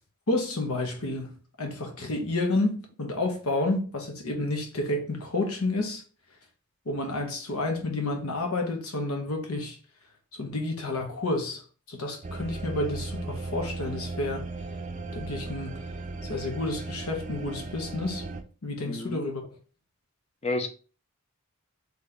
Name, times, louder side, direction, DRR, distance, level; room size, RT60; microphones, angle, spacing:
voice 1, 0.3-6.0 6.9-9.8 10.3-11.6 11.9-14.5 15.1-15.8 16.3-18.2 18.6-19.4, left 2 dB, 80° left, 1.1 m, -30 dB
sound 1, 12.2-18.4, right 3 dB, 35° right, 0.5 m, -36 dB
voice 2, 18.8-19.2 20.4-20.7, left 2 dB, 30° left, 0.6 m, -30 dB
4.0 x 3.2 x 3.3 m
head